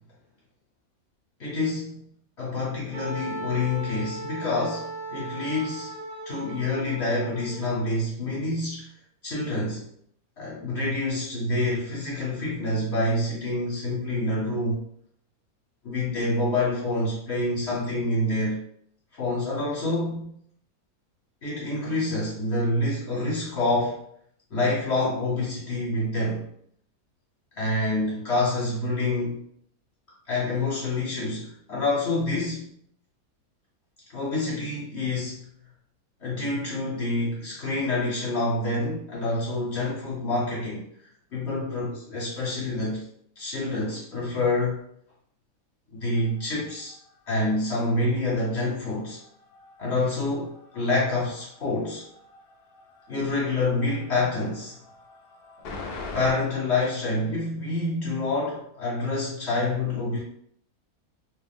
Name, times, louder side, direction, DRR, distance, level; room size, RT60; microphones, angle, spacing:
voice 1, 1.4-2.1 2.4-5.9 6.3-8.9 9.2-9.9 10.4-14.8 15.8-18.6 19.1-20.3 21.4-24.0 24.5-26.5 27.6-29.4 30.3-32.7 34.1-35.5 36.2-40.8 41.3-43.1 43.4-44.8 45.9-46.9 47.3-49.2 49.8-52.0 53.1-54.8 56.1-60.2, left 2 dB, 50° left, -6 dB, 1.1 m, -27 dB
Wind instrument woodwind instrument, 2.9-7.6, right 2 dB, 50° right, 0.7 m, -37 dB
sound 1, 46.1-56.3, left 3 dB, 70° left, 0.5 m, -45 dB
2.6 x 2.2 x 3.5 m, 0.66 s
omnidirectional pair, 1.6 m